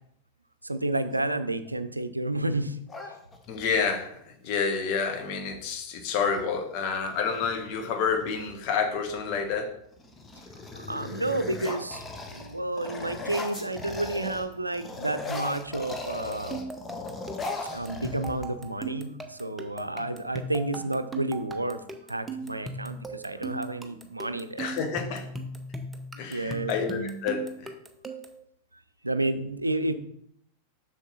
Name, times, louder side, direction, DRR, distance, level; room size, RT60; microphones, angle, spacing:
voice 1, 0.6-2.8 10.7-12.0 12.3-16.6 17.7-21.8 22.1-24.7 26.3-26.7 29.0-29.9, right 2 dB, 85° right, 0.5 m, -30 dB
sound 1, 2.9-3.8 5.5-5.7 6.0-6.5 7.0-8.5 9.2-9.6 9.9-14.5 14.7-18.7, left 3 dB, 15° left, 1.2 m, -38 dB
voice 2, 3.5-9.7 17.5-17.9 24.6-25.3 26.2-27.7, left 5 dB, 45° left, 1.5 m, -29 dB
sound 2, 16.1-28.4, right 2 dB, 10° right, 0.9 m, -39 dB
7.1 x 6.4 x 4.1 m
figure-of-eight pair, 90°, 0 cm